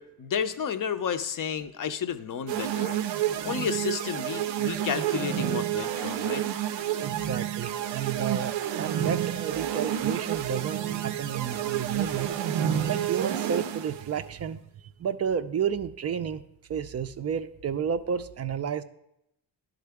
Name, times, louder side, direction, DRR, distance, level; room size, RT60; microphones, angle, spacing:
voice 1, 0.0-3.0 3.4-6.4, left 7 dB, 45° left, 10 dB, 0.6 m, -32 dB
sound 1, 2.5-14.0, right 11 dB, 85° right, 0.6 m, -29 dB
voice 2, 7.0-12.3 12.9-14.6 15.0-16.4 16.7-18.8, right 7 dB, 35° right, 11 dB, 0.4 m, -31 dB
11.0 x 3.8 x 3.4 m, 0.81 s
cardioid pair, 65°, 44 cm